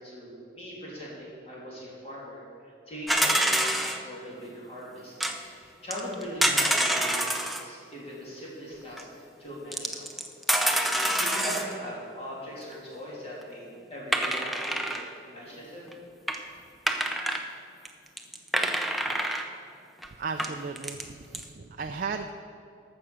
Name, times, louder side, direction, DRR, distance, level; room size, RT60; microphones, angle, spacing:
voice 1, 0.0-5.1 5.4-10.1 10.8-15.8, equal, 30° left, -6 dB, 3.1 m, -40 dB
sound 1, 3.1-4.0 5.2-5.4 5.9-7.6 9.0-9.1 9.7-11.8 14.1-15.1 15.9-16.0 16.3-16.4 16.9-17.4 17.9-18.0 18.2-19.5 20.0-20.1 20.4-21.0 21.3-21.4, right 1 dB, ahead, 0.6 m, -26 dB
voice 2, 20.2-22.3, right 5 dB, 45° right, 5 dB, 0.5 m, -35 dB
14.0 x 6.2 x 6.2 m, 2.6 s
head